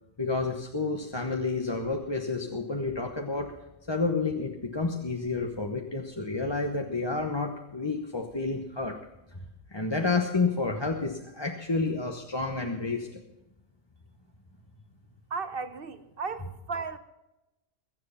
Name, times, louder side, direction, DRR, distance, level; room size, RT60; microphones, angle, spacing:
voice 1, 0.2-3.5 3.9-8.9 9.7-13.2, left 3 dB, 20° left, 2 dB, 1.1 m, -30 dB
voice 2, 15.3-17.0, right 4 dB, 50° right, 11 dB, 1.1 m, -35 dB
22.0 x 7.7 x 5.7 m, 0.96 s
omnidirectional pair, 1.3 m